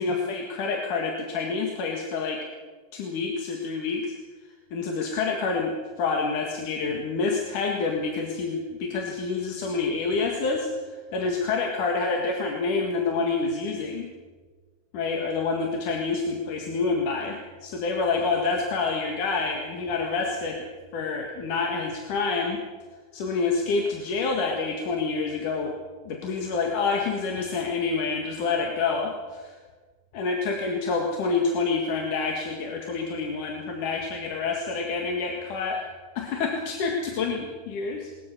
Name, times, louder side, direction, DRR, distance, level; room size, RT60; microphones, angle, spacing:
voice 1, 0.0-2.4 2.9-4.1 4.7-14.1 14.9-20.7 20.9-22.6 23.1-25.7 26.1-29.6 30.1-35.8 36.2-38.1, left 4 dB, 85° left, 1 dB, 3.5 m, -27 dB
21.0 x 20.5 x 6.8 m, 1.4 s
omnidirectional pair, 3.5 m